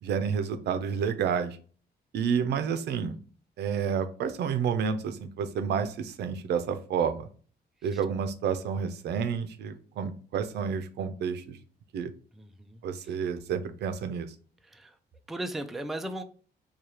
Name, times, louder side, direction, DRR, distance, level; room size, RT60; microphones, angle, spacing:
voice 1, 0.0-1.6 2.1-3.2 3.6-7.3 7.8-11.6 11.9-12.1 12.8-14.3, right 7 dB, 75° right, 9 dB, 0.5 m, -30 dB
voice 2, 12.4-12.8 14.6-14.9 15.3-16.2, right 1 dB, ahead, 7 dB, 0.3 m, -36 dB
4.7 x 2.3 x 2.8 m, 0.41 s
cardioid pair, 140°, 17 cm